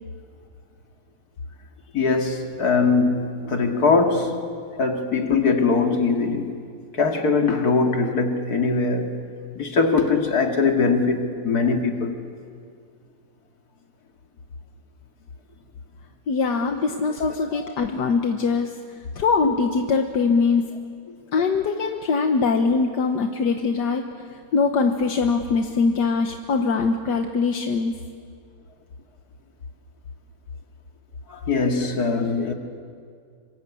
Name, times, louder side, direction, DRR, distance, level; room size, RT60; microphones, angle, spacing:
voice 1, 1.9-4.4 4.8-6.6 6.9-9.1 9.5-12.2 17.5-17.7 31.3-32.5, left 4 dB, 65° left, 2.7 m, -21 dB
voice 2, 16.3-18.8 19.2-20.6 21.3-28.0, left 4 dB, 80° left, 1.8 m, -22 dB
27.0 x 26.0 x 8.5 m
omnidirectional pair, 1.8 m